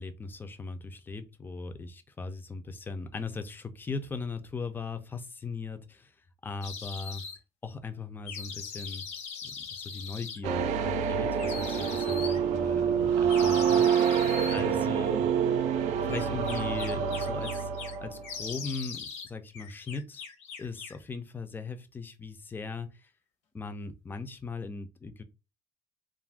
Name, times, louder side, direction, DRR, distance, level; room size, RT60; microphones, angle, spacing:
voice 1, 0.0-6.1 6.4-7.3 7.6-9.1 9.4-15.3 16.0-17.7 18.0-20.2 20.6-23.1 23.5-25.2, left 4 dB, 15° left, 0.4 m, -39 dB
sound 1, 6.6-7.4 8.3-10.4 11.4-12.4 13.3-14.6 16.1-18.0 18.2-19.3 19.5-21.0, left 6 dB, 70° left, 0.8 m, -40 dB
sound 2, 10.4-18.3, right 7 dB, 75° right, 0.4 m, -27 dB
2.4 x 2.2 x 3.3 m
cardioid pair, 130°, 12 cm